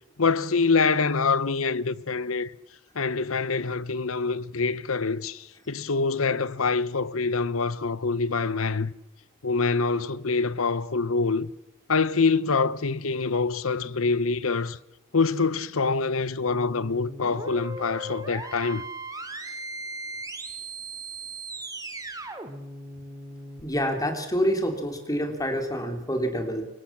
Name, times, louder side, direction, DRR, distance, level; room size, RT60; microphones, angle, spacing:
voice 1, 0.2-2.5 2.9-8.9 9.4-11.5 11.9-14.8 15.1-18.8, left 4 dB, 80° left, 1.0 m, -25 dB
sound 1, 16.5-23.6, right 2 dB, 20° right, 2.7 m, -38 dB
voice 2, 23.6-26.6, equal, 20° left, 3.6 m, -27 dB
26.0 x 24.0 x 7.4 m
head